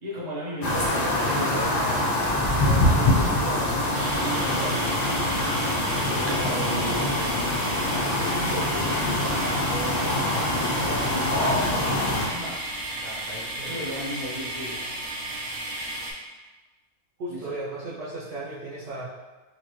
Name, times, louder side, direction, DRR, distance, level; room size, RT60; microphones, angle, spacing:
voice 1, 0.0-3.7 4.4-5.3 6.1-7.4 8.3-12.6 12.9-14.8 17.3-17.5, equal, 30° right, -6 dB, 1.0 m, -35 dB
sound 1, 0.6-12.3, left 1 dB, 85° left, 0.3 m, -24 dB
sound 2, 3.9-16.1, right 1 dB, 80° right, 1.3 m, -34 dB
voice 2, 17.2-19.0, right 2 dB, 55° right, -8 dB, 0.8 m, -35 dB
4.2 x 2.9 x 3.0 m, 1.2 s
omnidirectional pair, 1.6 m